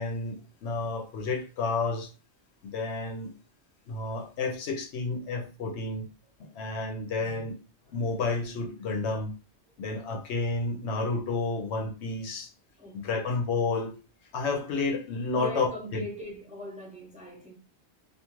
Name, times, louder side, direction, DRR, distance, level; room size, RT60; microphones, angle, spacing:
voice 1, 0.0-2.1 2.6-3.3 3.9-6.1 6.4-7.5 7.9-9.3 9.8-12.5 12.9-13.9 14.3-16.0, left 3 dB, 75° left, 0.9 m, -31 dB
voice 2, 7.2-7.5 12.8-13.4 15.3-17.5, equal, 10° right, 0.5 m, -41 dB
2.5 x 2.4 x 3.0 m
omnidirectional pair, 1.2 m